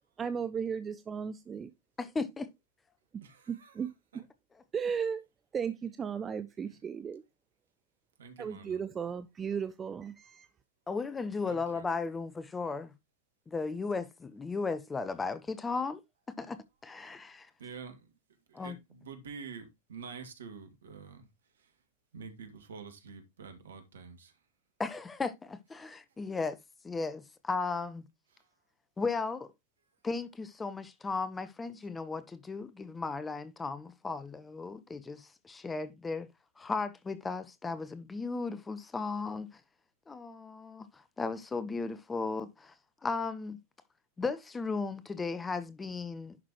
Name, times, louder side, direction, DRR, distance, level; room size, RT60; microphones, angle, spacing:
voice 1, 0.2-1.7 3.5-3.9 4.7-5.2 5.5-7.2 8.4-10.5, right 7 dB, 20° right, 0.5 m, -35 dB
voice 2, 2.0-2.5 10.9-12.9 13.5-16.0 16.4-17.5 18.5-18.8 24.8-26.6 26.8-28.0 29.0-29.5 30.0-36.3 36.6-39.6 40.1-42.7 43.0-43.6 44.2-46.4, left 4 dB, 15° left, 0.8 m, -36 dB
voice 3, 3.2-3.7 8.2-8.8 11.4-11.8 17.6-18.0 18.5-21.3 22.1-24.3, right 5 dB, 65° right, 2.0 m, -47 dB
11.0 x 6.0 x 3.0 m
figure-of-eight pair, 90°, 0 cm